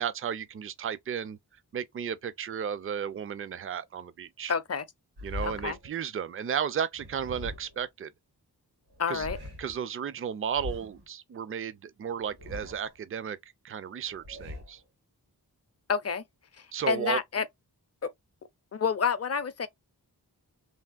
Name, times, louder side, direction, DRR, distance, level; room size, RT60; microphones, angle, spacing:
voice 1, 0.0-1.4 1.7-4.5 5.2-8.1 9.1-9.3 9.6-13.4 13.6-14.8 16.7-17.2, right 8 dB, 35° right, 0.4 m, -34 dB
voice 2, 4.5-4.8 5.4-5.8 9.0-9.4 15.9-16.2 16.6-17.4 18.0-18.1 18.7-19.7, left 6 dB, 40° left, 0.5 m, -29 dB
sound 1, 5.2-5.9 6.9-7.9 8.9-9.8 10.5-11.1 12.1-13.0 14.0-14.8, left 2 dB, 90° right, 2.2 m, -41 dB
3.4 x 2.4 x 2.3 m
wide cardioid pair, 70°, 39 cm